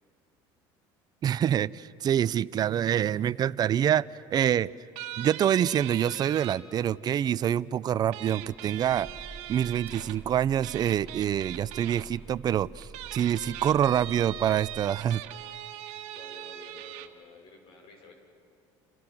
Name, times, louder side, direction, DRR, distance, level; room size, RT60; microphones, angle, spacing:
voice 1, 1.2-4.7 5.2-9.1 9.5-15.2, right 10 dB, 40° right, 17 dB, 0.5 m, -26 dB
sound 1, 5.0-6.6 8.1-10.2 10.6-12.0 12.8-17.1, right 13 dB, 75° right, 1.6 m, -40 dB
sound 2, 8.3-15.7, right 4 dB, 20° right, 1.1 m, -48 dB
voice 2, 16.1-18.1, left 3 dB, 55° left, 3 dB, 6.0 m, -52 dB
29.0 x 28.5 x 6.1 m, 2.5 s
supercardioid pair, 105°, 11 cm